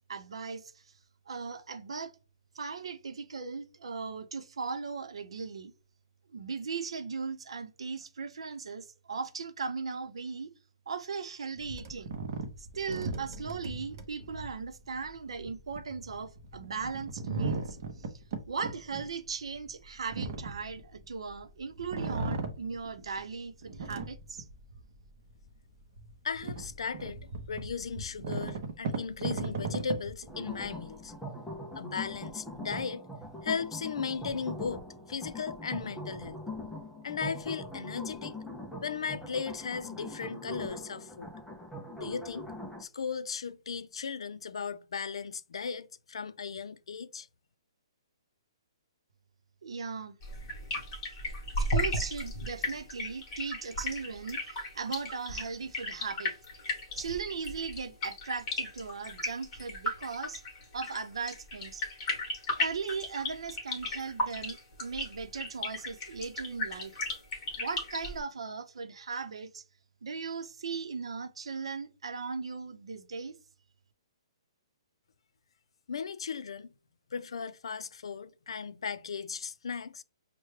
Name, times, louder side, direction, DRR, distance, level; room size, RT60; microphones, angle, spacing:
voice 1, 0.1-0.9 1.3-2.1 2.5-5.7 6.3-10.5 10.9-12.2 12.6-18.1 18.5-24.5 49.6-50.2 51.6-56.3 56.9-60.4 60.7-61.8 62.6-67.0 67.6-69.6 70.0-73.3, right 5 dB, 80° right, 0.7 m, -38 dB
sound 1, 11.6-21.4 21.8-23.2 23.6-24.9 25.4-25.5 26.0-31.1, right 3 dB, 35° right, 0.6 m, -37 dB
voice 2, 26.2-27.2 27.5-31.3 31.7-33.0 33.4-36.4 37.0-38.4 38.8-41.3 42.0-42.5 42.8-47.3 75.9-76.7 77.1-80.0, left 6 dB, 70° left, 0.4 m, -36 dB
sound 2, 30.3-42.8, left 1 dB, ahead, 0.4 m, -42 dB
sound 3, 50.2-68.2, left 1 dB, 20° left, 1.0 m, -35 dB
5.7 x 2.2 x 3.1 m
hypercardioid pair, 175°, 3 cm